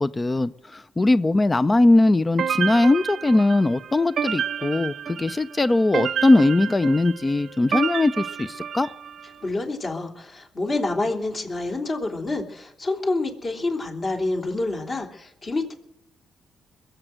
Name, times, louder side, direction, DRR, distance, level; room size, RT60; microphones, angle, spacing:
voice 1, 0.0-8.9, left 2 dB, 25° left, 15 dB, 0.5 m, -20 dB
sound 1, 2.4-9.3, right 8 dB, 60° right, 0.6 m, -30 dB
voice 2, 9.4-15.7, left 2 dB, 40° left, 2 dB, 3.4 m, -27 dB
21.5 x 8.0 x 7.8 m, 0.79 s
cardioid pair, 85°, 0 cm